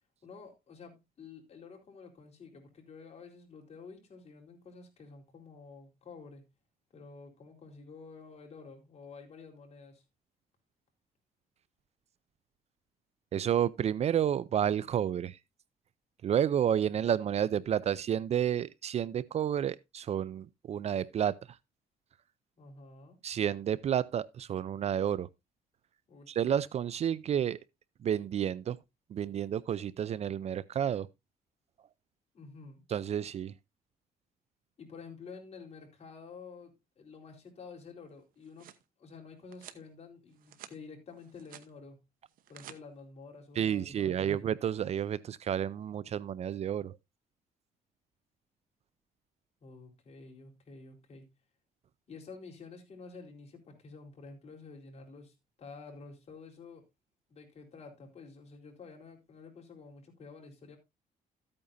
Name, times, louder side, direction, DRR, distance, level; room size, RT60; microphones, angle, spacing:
voice 1, 0.2-6.4 6.9-10.0 22.6-23.2 26.1-26.4 32.3-32.8 34.8-38.7 39.0-42.0 42.5-44.5 49.6-51.3 52.1-56.8 57.3-60.8, left 4 dB, 45° left, 4.1 m, -50 dB
voice 2, 13.3-15.4 16.2-21.6 23.2-25.3 26.3-27.6 28.0-28.8 29.1-31.1 32.9-33.5 43.6-47.0, right 9 dB, 45° right, 0.4 m, -30 dB
sound 1, 38.2-38.8 39.5-39.8 40.3-40.8 41.1-41.7 42.3-42.8, right 11 dB, 70° right, 1.0 m, -51 dB
13.5 x 8.7 x 2.6 m
cardioid pair, 115°, 15 cm